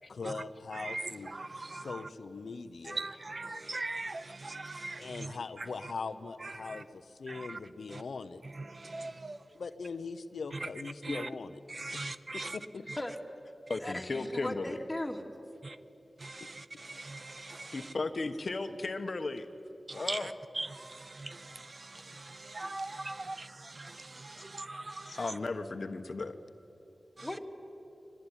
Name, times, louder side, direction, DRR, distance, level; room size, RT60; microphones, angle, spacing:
voice 1, 0.1-1.3 1.7-3.0 5.0-8.4 9.5-11.6 11.9-12.0 12.5-12.9 25.1-25.2, left 4 dB, 90° left, 10 dB, 0.8 m, -41 dB
voice 2, 0.8-2.0 2.9-5.3 6.4-6.8 7.3-7.6 7.9-8.0 8.7-9.4 11.0-11.3 11.7-12.6 15.6-15.8 16.2-17.7 19.9-20.2 20.6-25.2 27.2-27.3, right 2 dB, 45° right, 14 dB, 0.7 m, -41 dB
voice 3, 1.5-1.9 13.7-14.8 17.7-19.5 19.9-20.5 25.2-26.4, left 3 dB, 60° left, 8 dB, 1.2 m, -35 dB
voice 4, 13.8-15.2 27.2-27.4, left 1 dB, 15° left, 2 dB, 2.5 m, -37 dB
23.5 x 19.0 x 10.0 m, 2.8 s
wide cardioid pair, 70°, 0 cm